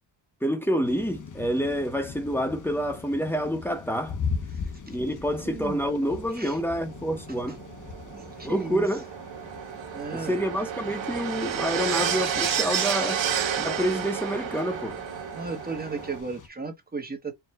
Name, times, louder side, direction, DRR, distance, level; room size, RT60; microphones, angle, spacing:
voice 1, 0.4-4.2 4.9-7.6 8.4-9.0 10.1-13.2 13.6-15.0, equal, 5° left, 1.1 m, -28 dB
sound 1, 0.8-16.5, left 5 dB, 45° left, 0.9 m, -40 dB
voice 2, 5.4-5.9 6.3-6.6 8.1-8.9 9.9-10.3 15.3-17.3, right 4 dB, 20° right, 1.1 m, -35 dB
sound 2, 6.1-16.2, right 8 dB, 85° right, 1.3 m, -31 dB
4.7 x 2.5 x 3.1 m
wide cardioid pair, 130°, 44 cm